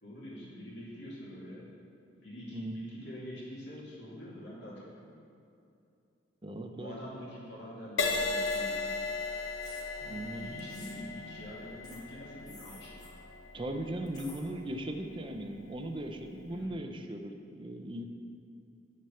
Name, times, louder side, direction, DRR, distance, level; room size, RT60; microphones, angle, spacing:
voice 1, 0.0-1.6 2.2-5.1 6.8-9.0 10.3-13.0 16.5-16.8, equal, 60° left, -5 dB, 2.5 m, -45 dB
voice 2, 6.4-7.0 10.0-10.4 13.5-18.1, right 1 dB, 25° right, 5 dB, 0.6 m, -38 dB
Crash cymbal, 8.0-15.6 16.3-16.6, left 3 dB, 85° left, 0.8 m, -37 dB
sound 1, 8.4-8.6 9.6-9.9 10.6-11.0 11.8-12.0 12.4-13.1 14.1-14.4, left 2 dB, 20° left, 1.3 m, -52 dB
8.0 x 6.3 x 6.9 m, 2.6 s
head